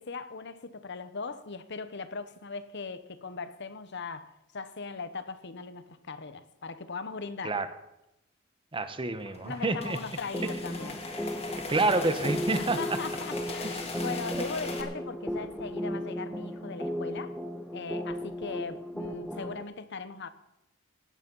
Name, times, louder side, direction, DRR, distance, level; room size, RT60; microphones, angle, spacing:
voice 1, 0.0-7.6 9.4-11.0 12.6-17.4 17.7-20.3, left 4 dB, 60° left, 1.0 m, -39 dB
voice 2, 8.7-10.0 11.7-13.0 13.6-13.8, right 2 dB, 25° right, 1.1 m, -28 dB
sound 1, 9.2-14.8, left 3 dB, 30° left, 2.0 m, -39 dB
sound 2, 10.3-19.6, equal, ahead, 0.9 m, -36 dB
16.5 x 10.5 x 5.5 m
head